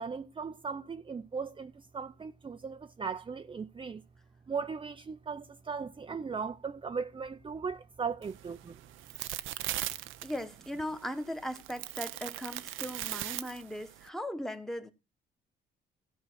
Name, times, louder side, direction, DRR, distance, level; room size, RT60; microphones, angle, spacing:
voice 1, 0.0-4.0 4.5-8.7, right 5 dB, 25° right, 0.6 m, -38 dB
sound 1, 8.2-14.1, right 14 dB, 90° right, 0.7 m, -39 dB
voice 2, 10.2-14.9, equal, ahead, 1.4 m, -38 dB
15.5 x 5.5 x 6.3 m
cardioid pair, 90°, 20 cm